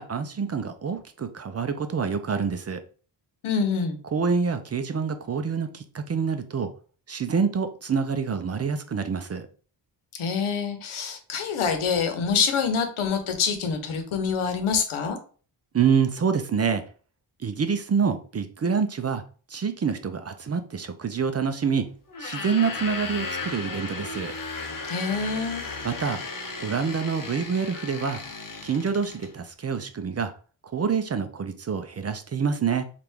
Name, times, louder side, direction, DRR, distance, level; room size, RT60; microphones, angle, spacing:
voice 1, 0.0-2.8 4.1-6.7 7.1-9.5 15.7-16.8 17.4-19.2 19.5-21.9 22.2-24.3 25.8-26.2 26.6-28.2 28.6-30.3 30.7-32.9, right 6 dB, 35° right, 8 dB, 0.4 m, -26 dB
voice 2, 3.4-4.0 10.1-15.2 24.9-25.6, left 6 dB, 90° left, 6 dB, 0.9 m, -26 dB
sound 1, 22.1-29.3, left 4 dB, 45° left, 0.9 m, -35 dB
3.4 x 2.5 x 4.4 m, 0.40 s
cardioid pair, 95°, 48 cm